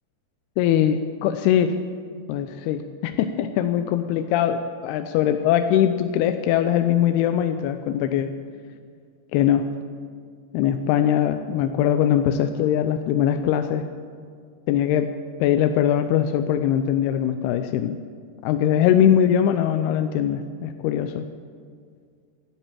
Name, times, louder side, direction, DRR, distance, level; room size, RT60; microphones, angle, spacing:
voice 1, 0.6-1.8 2.3-8.3 9.3-9.7 10.5-13.9 14.7-15.1 15.4-18.0 18.4-21.2, left 10 dB, 85° left, 8 dB, 2.4 m, -21 dB
16.0 x 10.0 x 7.5 m, 2.1 s
omnidirectional pair, 5.0 m